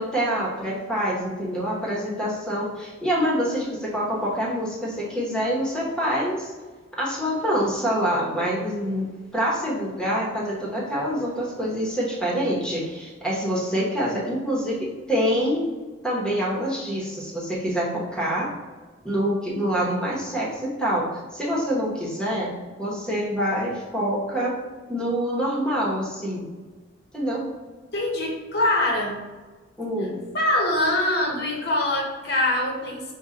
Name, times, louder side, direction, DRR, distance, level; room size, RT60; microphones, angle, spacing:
voice 1, 0.0-6.5 7.0-15.7 16.0-18.5 19.0-24.6 24.9-26.5 27.1-27.4 29.8-30.2, equal, 5° left, -5 dB, 1.0 m, -26 dB
voice 2, 27.9-29.2 30.3-33.0, left 1 dB, 55° left, -1 dB, 1.0 m, -23 dB
5.4 x 2.4 x 3.7 m, 1.3 s
head